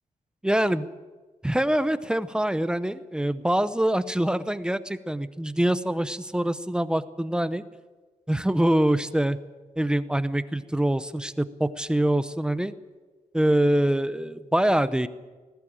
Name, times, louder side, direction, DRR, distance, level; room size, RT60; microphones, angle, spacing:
voice 1, 0.4-0.9 1.4-7.6 8.3-9.4 9.8-12.7 13.3-15.1, right 1 dB, 5° right, 13 dB, 0.7 m, -24 dB
19.5 x 16.5 x 8.9 m, 1.3 s
wide cardioid pair, 160°, 13 cm